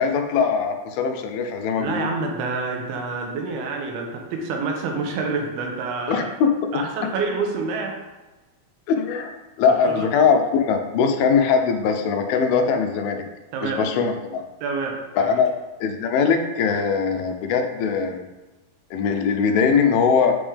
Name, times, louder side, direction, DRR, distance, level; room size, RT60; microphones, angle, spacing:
voice 1, 0.0-2.1 6.1-6.5 8.9-9.3 9.6-13.2 13.6-14.4 15.2-15.5 15.8-18.2 18.9-20.4, left 6 dB, 80° left, 5 dB, 2.5 m, -21 dB
voice 2, 1.8-6.3 6.7-7.9 9.9-10.1 13.5-13.8 14.6-15.3, right 4 dB, 85° right, 2 dB, 2.8 m, -27 dB
7.8 x 3.6 x 3.4 m, 1.1 s
omnidirectional pair, 4.4 m